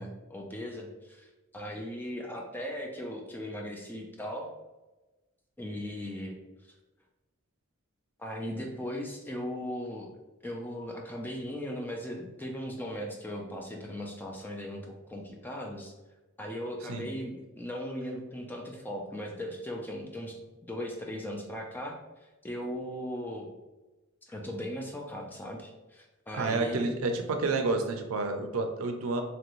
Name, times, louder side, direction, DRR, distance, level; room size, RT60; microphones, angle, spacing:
voice 1, 0.0-4.5 5.6-6.4 8.2-10.1 10.4-15.9 16.4-20.4 20.7-21.9 22.4-23.5 24.3-27.0, equal, 10° left, 1 dB, 0.3 m, -38 dB
voice 2, 26.3-29.2, right 3 dB, 80° right, 5 dB, 0.4 m, -29 dB
2.9 x 2.5 x 3.0 m, 1.1 s
head